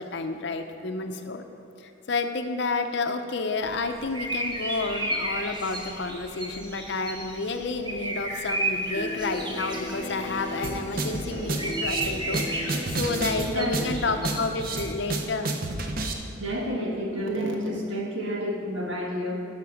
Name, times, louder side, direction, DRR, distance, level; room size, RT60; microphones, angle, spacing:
voice 1, 0.0-1.4 1.8-15.5, left 3 dB, 60° left, 7 dB, 0.7 m, -30 dB
sound 1, 3.6-15.2, right 1 dB, 20° right, 1.0 m, -34 dB
sound 2, 8.9-14.4, left 1 dB, 30° left, 1.0 m, -37 dB
sound 3, 10.6-16.1, right 2 dB, 45° right, 0.8 m, -30 dB
voice 2, 13.5-13.9 16.4-19.5, equal, 70° right, 0 dB, 1.6 m, -30 dB
11.0 x 5.9 x 5.9 m, 2.9 s
head